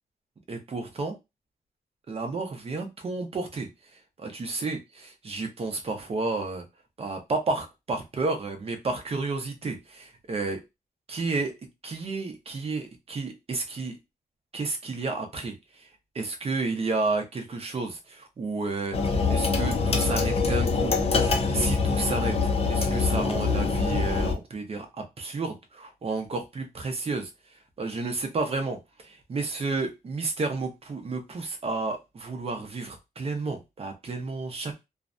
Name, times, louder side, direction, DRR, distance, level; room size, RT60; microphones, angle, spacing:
voice 1, 0.5-1.2 2.1-6.6 7.0-10.6 11.1-11.5 11.8-14.0 14.5-15.9 16.1-20.9 21.2-22.4 22.7-27.3 27.8-34.7, right 3 dB, 35° right, 5 dB, 0.6 m, -31 dB
sound 1, 18.9-24.3, left 4 dB, 35° left, 0.4 m, -24 dB
2.5 x 2.1 x 2.5 m, 0.22 s
wide cardioid pair, 145°, 17 cm